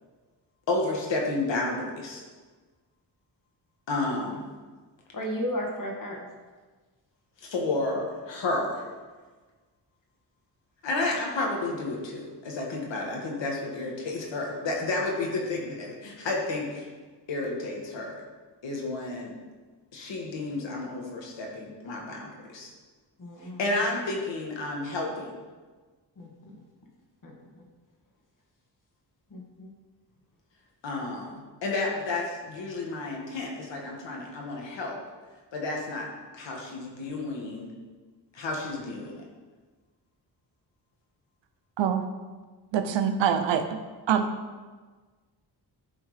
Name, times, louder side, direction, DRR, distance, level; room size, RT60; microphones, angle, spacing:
voice 1, 0.7-2.2 3.9-4.4 7.4-8.9 10.8-16.9 17.3-18.2 18.6-19.4 19.9-22.7 23.6-25.3 30.8-35.0 35.5-36.1 36.3-37.7 38.3-39.3, left 2 dB, 90° left, 0 dB, 1.7 m, -31 dB
voice 2, 5.1-6.3 23.2-23.6 26.2-26.6 27.2-27.6 29.3-29.7, equal, 45° left, -1 dB, 1.7 m, -35 dB
voice 3, 42.7-43.8 44.1-44.3, right 8 dB, 85° right, 8 dB, 0.8 m, -24 dB
11.0 x 3.7 x 4.9 m, 1.4 s
wide cardioid pair, 115°, 43 cm